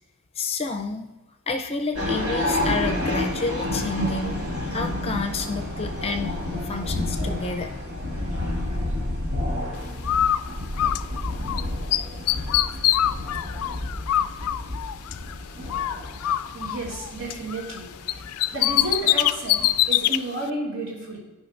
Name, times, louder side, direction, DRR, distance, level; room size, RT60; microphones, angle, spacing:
voice 1, 0.4-1.1 1.5-7.7, left 3 dB, 30° left, 5 dB, 0.6 m, -30 dB
sound 1, 1.9-19.9, left 1 dB, 90° right, 2.2 m, -30 dB
Bird, 10.0-11.6 11.9-15.4 15.7-17.8 18.1-20.2, left 12 dB, 80° left, 0.3 m, -24 dB
voice 2, 16.5-17.9 18.5-21.2, right 1 dB, 65° right, -3 dB, 2.3 m, -32 dB
14.0 x 5.3 x 2.6 m, 1.1 s
head